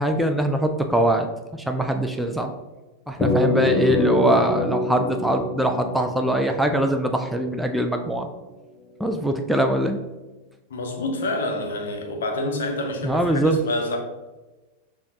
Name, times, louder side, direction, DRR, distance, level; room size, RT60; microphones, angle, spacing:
voice 1, 0.0-2.5 3.1-8.3 9.0-10.0 13.0-13.6, right 1 dB, ahead, 0.3 m, -22 dB
sound 1, 3.2-7.8, left 2 dB, 25° left, 0.7 m, -25 dB
voice 2, 10.7-14.0, left 2 dB, 65° left, 0.7 m, -27 dB
7.0 x 2.4 x 2.7 m
figure-of-eight pair, 90°, 0 cm